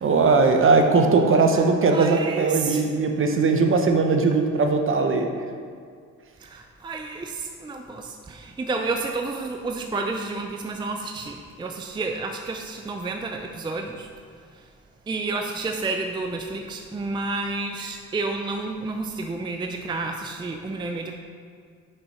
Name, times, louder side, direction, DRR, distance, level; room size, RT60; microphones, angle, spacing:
voice 1, 0.0-5.3, right 4 dB, 45° right, 4 dB, 0.9 m, -19 dB
voice 2, 1.9-2.8 6.4-14.1 15.1-21.2, right 3 dB, 15° right, 4 dB, 0.4 m, -30 dB
6.1 x 5.8 x 4.3 m, 2.1 s
cardioid pair, 90°, 30 cm